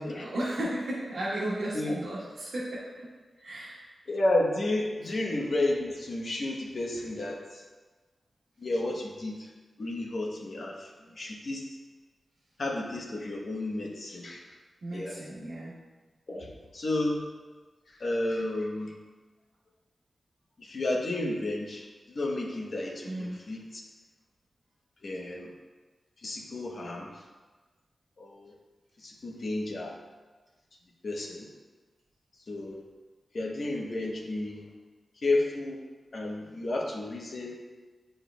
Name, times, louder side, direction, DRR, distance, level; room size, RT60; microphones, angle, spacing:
voice 1, 0.0-3.1 3.4-3.8 5.0-5.2 14.8-15.8 23.0-23.4, right 1 dB, 90° right, -9 dB, 1.2 m, -35 dB
voice 2, 4.1-7.4 8.6-9.5 9.8-10.9 11.2-11.6 12.6-14.4 14.9-15.1 16.3-17.3 18.0-19.0 20.6-21.8 22.1-23.6 25.0-25.5 26.2-27.1 28.2-28.5 29.0-30.0 31.0-31.5 32.5-32.8 33.3-34.7 35.2-35.8 36.1-37.6, left 2 dB, 65° left, -1 dB, 1.1 m, -31 dB
9.5 x 4.4 x 2.3 m, 1.3 s
cardioid pair, 70°, 0 cm